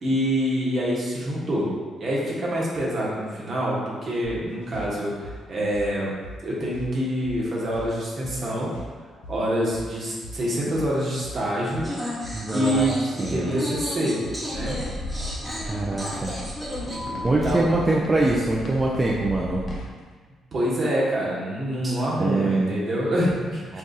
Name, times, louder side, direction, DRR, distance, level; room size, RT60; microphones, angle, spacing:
voice 1, 0.0-1.7 2.0-6.1 6.4-8.7 9.3-11.9 12.5-14.2 14.5-14.8 16.9-17.6 20.5-23.8, equal, 50° right, -5 dB, 1.0 m, -26 dB
sound 1, 4.2-20.1, equal, 90° left, 0.4 m, -41 dB
sound 2, 11.8-17.5, left 1 dB, 5° right, 0.9 m, -33 dB
voice 2, 12.3-13.6 15.6-16.3 17.2-19.6 21.8-21.9 22.2-22.7 23.7-23.8, right 2 dB, 25° right, -4 dB, 0.4 m, -24 dB
sound 3, 14.5-19.8, left 1 dB, 45° left, 0.8 m, -36 dB
2.6 x 2.3 x 3.8 m, 1.5 s
hypercardioid pair, 50°, 0 cm